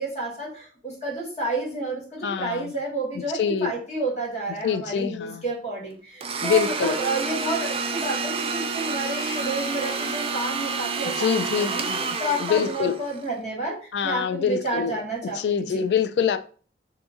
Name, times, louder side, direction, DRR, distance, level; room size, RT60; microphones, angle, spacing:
voice 1, 0.0-15.9, right 2 dB, 40° left, -2 dB, 1.3 m, -30 dB
voice 2, 2.2-2.7 3.3-3.7 4.6-5.4 6.4-7.0 11.2-13.0 13.9-15.0 15.3-16.4, left 7 dB, 70° left, 10 dB, 0.3 m, -25 dB
Domestic sounds home sounds, 6.2-13.3, right 4 dB, 35° right, 0.4 m, -29 dB
2.8 x 2.5 x 3.6 m, 0.40 s
head